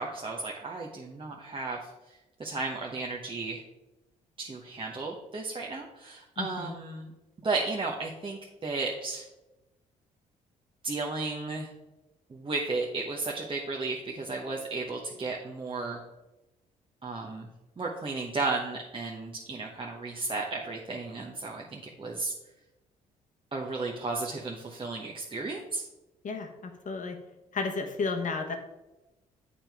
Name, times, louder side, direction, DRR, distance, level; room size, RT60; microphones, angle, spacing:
voice 1, 0.0-1.9 2.4-3.6 4.4-7.1 7.4-9.2 10.8-11.7 12.3-16.0 17.0-17.5 17.8-22.3 23.5-25.8, right 3 dB, 25° right, -2 dB, 1.0 m, -34 dB
voice 2, 6.4-6.7 26.2-27.2 27.5-28.6, left 4 dB, 45° left, 4 dB, 1.2 m, -33 dB
8.7 x 4.3 x 3.5 m, 1.0 s
hypercardioid pair, 45°, 19 cm